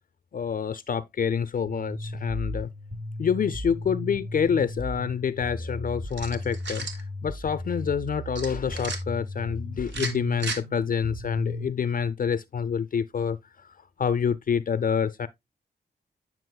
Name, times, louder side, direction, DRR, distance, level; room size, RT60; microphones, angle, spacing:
voice 1, 0.3-2.7 3.2-6.9 7.2-13.4 14.0-15.3, left 7 dB, 50° left, 0.4 m, -27 dB
sound 1, 1.7-11.7, left 1 dB, 50° right, 3.8 m, -36 dB
sound 2, 6.1-7.0 8.3-9.0 9.9-10.6, right 4 dB, 80° right, 1.5 m, -34 dB
9.2 x 6.0 x 2.2 m
cardioid pair, 60°, 18 cm